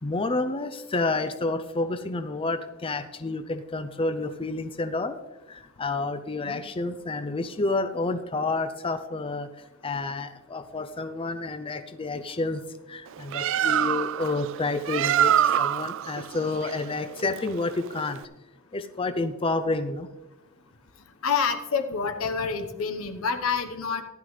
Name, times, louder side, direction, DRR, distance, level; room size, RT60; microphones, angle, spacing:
voice 1, 0.0-5.2 5.5-9.5 9.8-12.6 12.9-18.2 18.7-20.1, left 3 dB, 25° left, 8 dB, 0.5 m, -29 dB
Bird, 13.1-18.3, right 10 dB, 65° right, 0.3 m, -26 dB
voice 2, 21.2-24.0, left 5 dB, 80° left, 7 dB, 1.1 m, -27 dB
15.0 x 11.0 x 3.3 m, 1.1 s
head